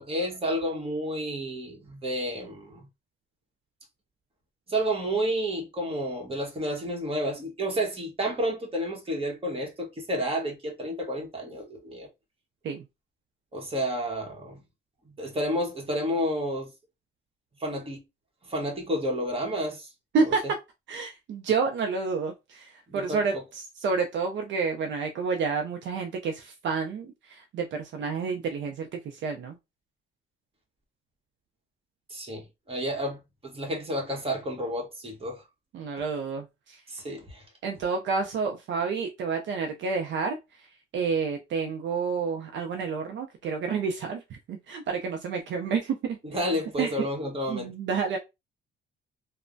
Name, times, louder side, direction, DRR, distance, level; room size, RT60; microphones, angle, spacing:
voice 1, 0.0-2.9 4.7-12.1 13.5-14.6 15.2-16.7 17.6-18.0 18.4-19.9 22.9-23.2 32.1-35.4 36.9-37.4 46.2-47.7, equal, 30° right, 1.1 m, -30 dB
voice 2, 20.1-20.5 20.9-29.6 35.7-36.8 37.6-40.7 40.9-46.5 46.8-47.1 47.5-48.2, right 5 dB, 70° right, 0.5 m, -29 dB
3.1 x 2.1 x 2.5 m
cardioid pair, 90°, 20 cm